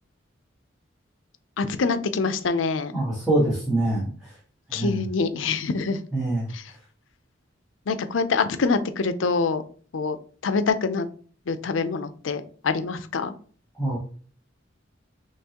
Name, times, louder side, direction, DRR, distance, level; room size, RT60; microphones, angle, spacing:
voice 1, 1.6-2.9 4.7-6.0 6.5-6.6 7.9-9.6 9.9-10.2 10.4-11.1 11.5-13.3, left 4 dB, 90° left, 10 dB, 0.5 m, -25 dB
voice 2, 2.9-4.3 4.7-5.0 6.1-6.5 13.8-14.0, right 1 dB, ahead, -8 dB, 1.3 m, -24 dB
5.5 x 3.2 x 2.9 m, 0.44 s
head